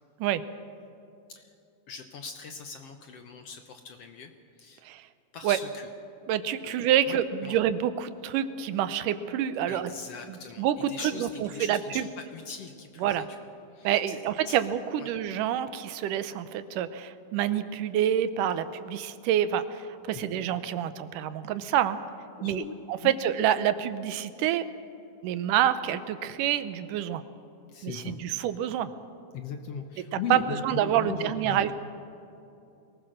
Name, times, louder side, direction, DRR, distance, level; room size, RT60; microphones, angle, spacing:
voice 1, 1.9-4.3 4.6-4.8 5.3-5.9 6.6-6.7 7.1-7.6 9.7-13.4 13.7-14.7 15.0-15.1 20.1-20.2 22.4-22.7 23.0-23.2 27.7-28.2 29.3-31.7, left 6 dB, 65° left, 6 dB, 1.6 m, -40 dB
voice 2, 6.3-9.9 10.3-10.8 11.2-12.1 13.0-13.3 13.8-22.0 22.4-22.6 22.9-24.6 25.2-27.2 27.8-28.9 30.3-31.7, right 10 dB, 85° right, 12 dB, 2.4 m, -27 dB
22.5 x 19.0 x 6.5 m, 2.7 s
omnidirectional pair, 3.7 m